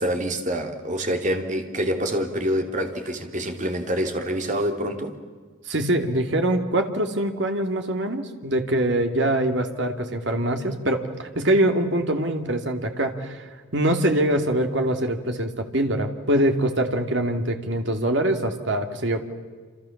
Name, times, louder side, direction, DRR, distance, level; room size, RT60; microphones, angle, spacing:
voice 1, 0.0-5.2, equal, 35° right, 4 dB, 2.9 m, -26 dB
voice 2, 5.7-13.5 13.7-19.2, right 1 dB, 55° right, 5 dB, 2.6 m, -23 dB
29.0 x 27.5 x 7.3 m, 1.6 s
head